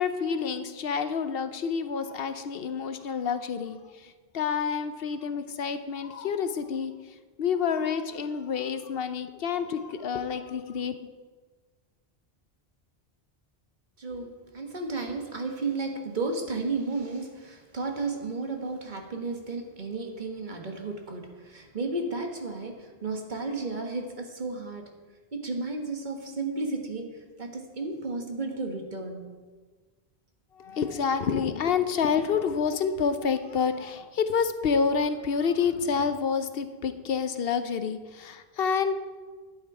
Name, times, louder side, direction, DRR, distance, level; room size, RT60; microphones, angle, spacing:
voice 1, 0.0-6.9 7.4-11.0 30.6-39.0, left 6 dB, 70° left, 10 dB, 0.9 m, -28 dB
voice 2, 14.0-24.9 25.3-27.1 27.4-29.3, right 3 dB, 50° right, 3 dB, 1.5 m, -33 dB
11.5 x 9.1 x 4.8 m, 1.4 s
omnidirectional pair, 1.0 m